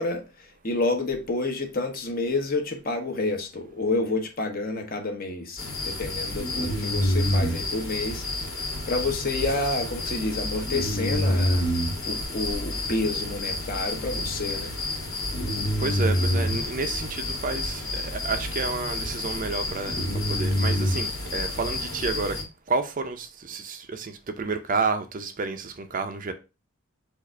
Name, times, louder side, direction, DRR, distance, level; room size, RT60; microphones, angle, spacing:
voice 1, 0.0-8.2 8.6-11.7 12.1-14.7, left 2 dB, 45° left, 0.9 m, -29 dB
sound 1, 5.6-22.4, left 1 dB, 85° left, 1.6 m, -28 dB
voice 2, 15.8-20.0 20.3-22.4 22.7-26.3, right 4 dB, 40° right, 0.5 m, -30 dB
4.7 x 2.5 x 4.4 m
head